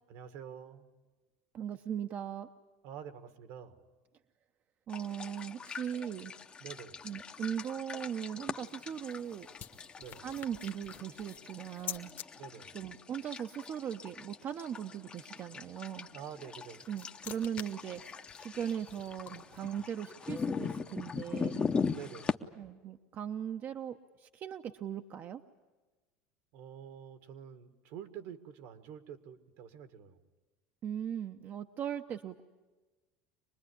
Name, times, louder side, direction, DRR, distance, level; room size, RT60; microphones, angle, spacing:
voice 1, 0.1-0.9 2.8-3.9 6.6-7.0 10.0-10.3 12.3-12.8 16.1-16.9 21.9-22.5 26.5-30.2, right 8 dB, 70° right, 10 dB, 1.7 m, -47 dB
voice 2, 1.5-2.5 4.9-6.3 7.0-9.5 10.2-12.1 12.7-16.1 16.9-21.6 22.6-25.4 30.8-32.4, right 9 dB, 40° right, 7 dB, 0.8 m, -39 dB
sound 1, 4.9-22.3, left 5 dB, 20° left, 0.8 m, -40 dB
sound 2, 8.6-12.3 16.4-19.8, left 10 dB, 40° left, 1.3 m, -48 dB
24.5 x 20.5 x 9.9 m, 1.2 s
supercardioid pair, 130°, 5 cm